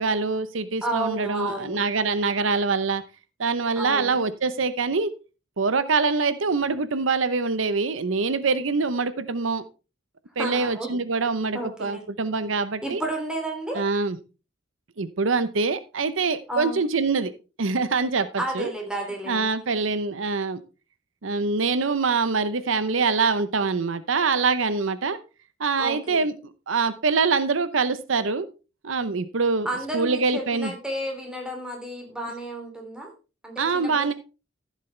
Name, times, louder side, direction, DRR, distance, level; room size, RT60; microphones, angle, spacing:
voice 1, 0.0-3.0 3.4-5.1 5.6-9.6 10.4-13.0 13.8-14.2 15.0-17.3 17.6-18.7 19.3-20.6 21.2-25.2 25.6-26.4 26.7-28.5 28.8-29.7 29.9-30.7 33.6-34.1, right 4 dB, 85° right, 13 dB, 0.8 m, -24 dB
voice 2, 0.8-1.8 3.8-4.2 10.4-10.9 11.5-12.0 12.8-13.8 16.5-16.8 18.4-19.5 25.8-26.2 29.6-33.1 33.4-34.1, right 1 dB, 5° right, 1 dB, 2.9 m, -32 dB
14.5 x 7.5 x 3.3 m, 0.31 s
head